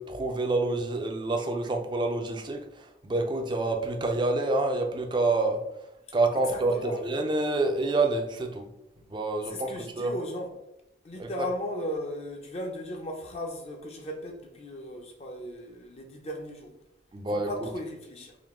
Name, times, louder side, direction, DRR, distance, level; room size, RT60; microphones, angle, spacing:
voice 1, 0.0-5.6 6.1-8.7 9.1-10.1 11.2-11.5 17.1-17.7, right 2 dB, 25° right, 0.4 m, -28 dB
voice 2, 6.5-7.0 9.5-10.5 11.0-16.7 17.5-18.4, left 1 dB, 30° left, 0.5 m, -36 dB
3.7 x 2.6 x 3.6 m
head